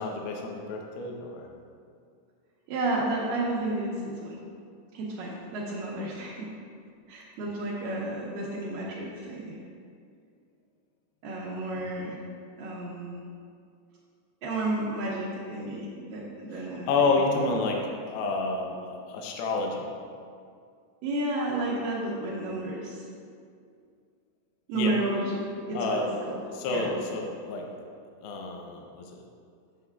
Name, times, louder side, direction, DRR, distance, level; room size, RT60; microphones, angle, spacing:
voice 1, 0.0-1.5 16.9-18.8 19.1-19.9 24.8-24.9 25.7-26.2 26.5-27.7 28.2-29.2, left 3 dB, 80° left, 1 dB, 2.3 m, -29 dB
voice 2, 2.7-4.4 4.9-6.5 7.1-9.6 11.2-12.2 12.6-13.2 14.4-17.1 21.0-23.0 24.7-25.4 25.7-26.4 26.7-26.9, right 2 dB, 85° right, -6 dB, 1.9 m, -32 dB
9.2 x 6.4 x 2.3 m, 2.3 s
omnidirectional pair, 5.0 m